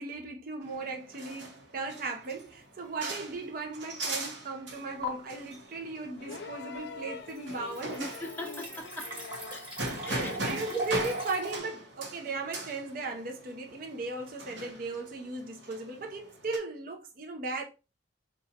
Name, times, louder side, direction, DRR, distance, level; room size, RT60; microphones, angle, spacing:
voice 1, 0.0-8.0 10.0-17.6, right 3 dB, 50° right, 0.6 m, -37 dB
sound 1, 0.6-16.6, right 2 dB, 90° right, 0.9 m, -40 dB
sound 2, 2.2-2.5 3.0-3.1 5.0-5.1 6.9-7.0 7.3-11.6, equal, 30° right, 1.2 m, -39 dB
sound 3, 6.2-9.7 11.1-11.2, left 4 dB, 65° left, 0.3 m, -44 dB
voice 2, 8.0-9.1 9.5-9.7 10.0-10.8, right 1 dB, 10° left, 0.5 m, -39 dB
3.9 x 2.3 x 2.7 m
head